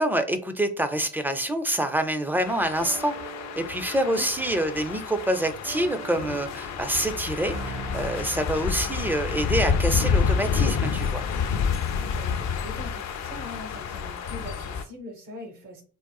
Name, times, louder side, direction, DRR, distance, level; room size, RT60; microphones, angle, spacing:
voice 1, 0.0-3.1 3.6-11.2, right 1 dB, 5° right, 0.4 m, -26 dB
sound 1, 2.5-14.8, left 6 dB, 60° left, 0.5 m, -29 dB
sound 2, 2.8-9.7, right 3 dB, 55° right, 0.9 m, -42 dB
voice 2, 12.0-15.8, left 1 dB, 80° right, 1.2 m, -41 dB
3.7 x 2.3 x 2.3 m
cardioid pair, 90°, 30 cm